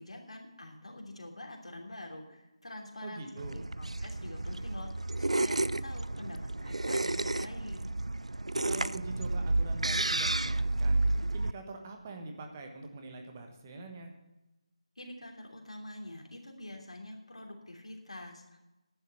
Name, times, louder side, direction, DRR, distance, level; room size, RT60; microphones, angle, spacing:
voice 1, 0.0-4.9 5.2-7.9 15.0-18.4, left 1 dB, 70° left, 1 dB, 3.0 m, -46 dB
voice 2, 3.0-3.7 8.6-11.0 11.3-14.1, right 3 dB, 25° right, 4 dB, 1.4 m, -44 dB
sound 1, 3.4-11.5, right 2 dB, 80° right, 0.3 m, -31 dB
10.5 x 7.2 x 8.2 m, 0.99 s
figure-of-eight pair, 160°, 3 cm